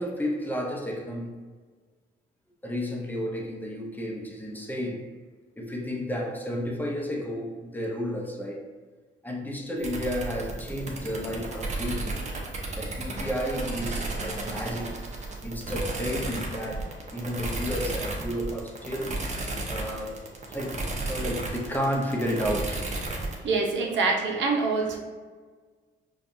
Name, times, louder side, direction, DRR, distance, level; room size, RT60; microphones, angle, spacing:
voice 1, 0.0-1.4 2.6-5.1 5.6-8.7 9.2-12.2 12.7-15.0 15.4-19.3 19.7-20.2 20.5-23.0, equal, 10° left, 0 dB, 0.7 m, -32 dB
sound 1, 9.8-23.4, right 2 dB, 35° right, 0.8 m, -33 dB
voice 2, 23.4-25.0, right 4 dB, 70° right, 1 dB, 0.7 m, -25 dB
5.2 x 2.3 x 2.6 m, 1.5 s
cardioid pair, 90°, 20 cm